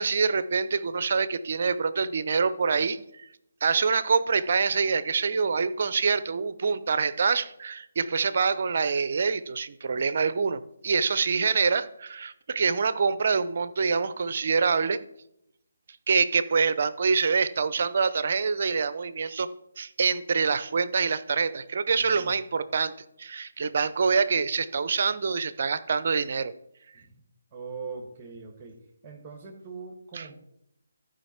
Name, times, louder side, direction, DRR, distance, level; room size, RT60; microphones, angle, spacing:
voice 1, 0.0-3.3 3.6-15.0 16.1-19.5 19.8-22.9 23.2-26.5 30.1-30.3, right 5 dB, 45° right, 14 dB, 0.6 m, -25 dB
voice 2, 21.9-22.3 26.9-27.1 27.5-28.8 29.0-30.4, right 5 dB, 15° right, 1 dB, 1.5 m, -41 dB
14.5 x 5.1 x 4.3 m, 0.79 s
figure-of-eight pair, 150°, 0 cm